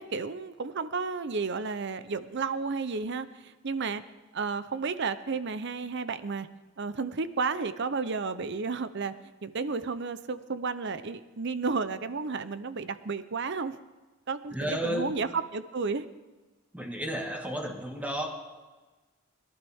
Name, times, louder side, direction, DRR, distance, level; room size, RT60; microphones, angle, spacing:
voice 1, 0.0-4.0 4.3-6.5 6.8-9.1 9.4-13.7 14.3-14.5 14.8-15.3 15.5-16.1, right 4 dB, 60° right, 13 dB, 0.7 m, -32 dB
voice 2, 14.5-15.2 16.7-18.3, equal, 10° right, 1 dB, 1.8 m, -32 dB
22.0 x 12.0 x 3.6 m, 1.2 s
head